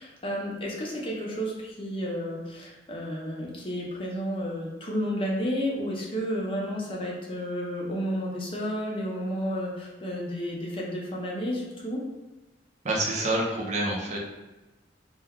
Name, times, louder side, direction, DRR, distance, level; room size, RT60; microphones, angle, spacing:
voice 1, 0.0-12.0, equal, 30° left, -3 dB, 0.7 m, -31 dB
voice 2, 12.8-14.2, right 1 dB, 40° right, -3 dB, 0.6 m, -27 dB
2.4 x 2.1 x 3.6 m, 1.1 s
head